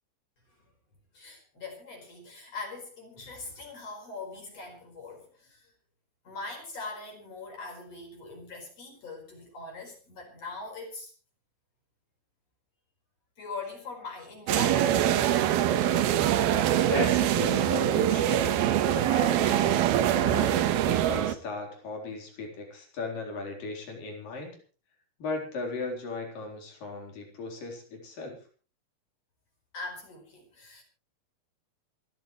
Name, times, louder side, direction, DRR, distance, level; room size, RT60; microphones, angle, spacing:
voice 1, 1.1-5.7 6.2-11.1 13.4-15.0 29.7-30.8, left 3 dB, 40° left, 2 dB, 5.6 m, -41 dB
sound 1, 14.5-21.3, right 11 dB, 85° right, 3.1 m, -24 dB
voice 2, 16.8-18.4 19.1-24.6 25.2-28.4, left 3 dB, 60° left, 2 dB, 5.6 m, -37 dB
26.5 x 13.5 x 3.2 m, 0.36 s
omnidirectional pair, 4.4 m